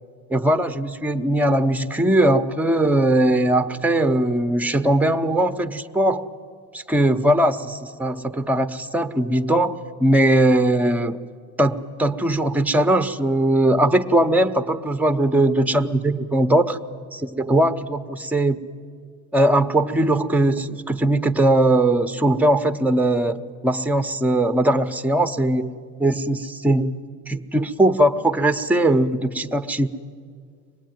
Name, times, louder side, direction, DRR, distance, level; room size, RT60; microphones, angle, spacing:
voice 1, 0.3-6.2 6.7-11.2 11.6-16.8 17.1-18.6 19.3-23.4 23.6-25.7 26.0-29.9, right 1 dB, 5° right, 9 dB, 0.9 m, -20 dB
24.0 x 20.0 x 9.4 m, 2.1 s
cardioid pair, 125°, 32 cm